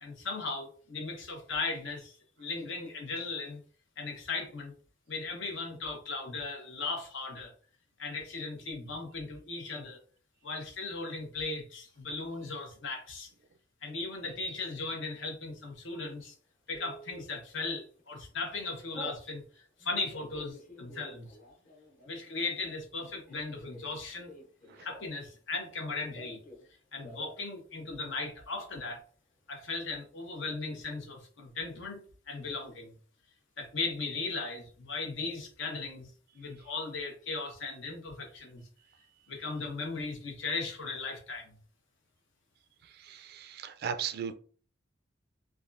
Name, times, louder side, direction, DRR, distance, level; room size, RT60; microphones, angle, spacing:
voice 1, 0.0-3.6 4.0-4.7 5.1-7.5 8.0-10.0 10.4-13.3 13.8-16.3 16.7-21.4 22.1-24.4 24.8-26.4 26.9-29.0 29.5-32.9 33.6-38.7 39.3-41.5, left 3 dB, 70° left, 0.8 m, -37 dB
Telephone, 16.7-17.2 17.8-18.1 18.4-19.2 19.8-25.3 25.6-26.7 26.9-27.4 27.7-27.8 28.1-28.6, equal, 45° left, 1.1 m, -50 dB
voice 2, 43.0-44.3, right 7 dB, 55° right, 0.3 m, -36 dB
3.4 x 2.3 x 2.5 m
head